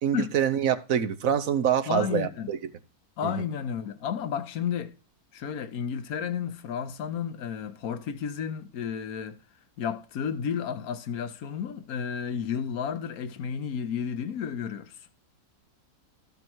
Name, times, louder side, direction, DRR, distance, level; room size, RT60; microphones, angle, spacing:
voice 1, 0.0-2.6 3.2-3.4, right 9 dB, 65° right, 1.2 m, -26 dB
voice 2, 1.9-2.5 3.2-4.9 5.3-9.4 9.8-15.0, left 7 dB, 70° left, 1.4 m, -32 dB
13.5 x 5.4 x 4.6 m
omnidirectional pair, 1.6 m